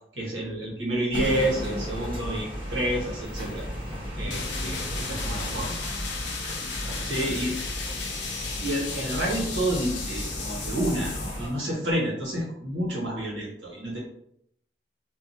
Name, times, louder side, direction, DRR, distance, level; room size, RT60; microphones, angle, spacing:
voice 1, 0.1-3.7 4.2-5.7 7.0-7.5 8.6-14.0, right 1 dB, 85° right, -3 dB, 1.0 m, -29 dB
sound 1, 1.1-11.5, equal, 30° right, 1.0 m, -35 dB
voice 2, 4.2-5.9 6.6-7.4 7.8-8.2, left 1 dB, 20° left, -2 dB, 0.5 m, -43 dB
sound 2, 4.3-11.5, left 5 dB, 85° left, 0.6 m, -35 dB
2.7 x 2.3 x 2.6 m, 0.72 s
head